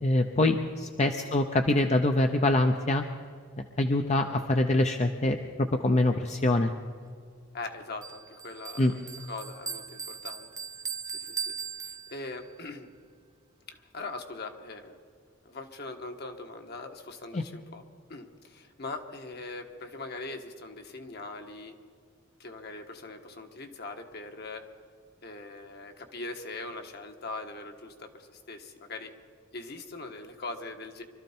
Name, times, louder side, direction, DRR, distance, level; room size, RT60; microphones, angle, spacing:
voice 1, 0.0-3.0 3.8-6.7 8.8-8.9 17.3-17.4, left 2 dB, 35° left, 5 dB, 0.7 m, -25 dB
voice 2, 7.5-9.0 9.3-10.5 11.1-12.9 13.7-15.0 15.4-17.8 18.1-21.7 22.4-24.6 25.2-29.1 29.5-31.0, left 3 dB, 55° left, 5 dB, 1.4 m, -41 dB
Bell, 8.0-12.5, right 6 dB, 20° right, 0.6 m, -39 dB
24.0 x 13.0 x 4.4 m, 2.1 s
head